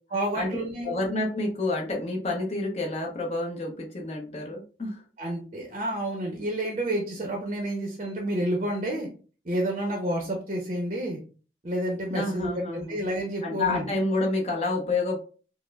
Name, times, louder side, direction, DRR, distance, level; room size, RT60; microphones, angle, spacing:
voice 1, 0.1-0.9 5.2-9.1 9.4-11.2 11.6-13.9, right 1 dB, 35° right, 1 dB, 0.6 m, -29 dB
voice 2, 0.8-5.0 12.1-13.0 13.4-15.2, left 2 dB, 35° left, -1 dB, 0.8 m, -29 dB
5.0 x 2.0 x 2.3 m, 0.38 s
head